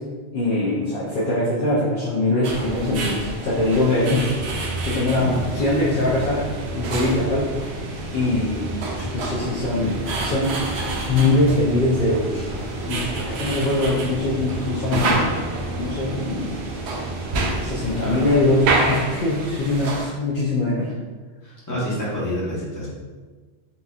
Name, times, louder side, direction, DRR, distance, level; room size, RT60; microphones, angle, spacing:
voice 1, 0.3-4.3 4.9-6.5 6.7-7.9 8.1-8.6 8.9-10.5 11.0-12.5 12.9-15.5 15.8-16.5 17.6-20.9, left 2 dB, 55° left, -7 dB, 0.8 m, -22 dB
sound 1, 2.4-20.1, right 2 dB, 75° right, 0.8 m, -29 dB
sound 2, 4.3-18.7, right 2 dB, 20° right, 0.5 m, -33 dB
voice 2, 5.0-5.6 18.0-18.2 21.4-22.9, left 1 dB, 15° left, -8 dB, 1.1 m, -28 dB
4.1 x 2.6 x 2.4 m, 1.4 s
omnidirectional pair, 1.2 m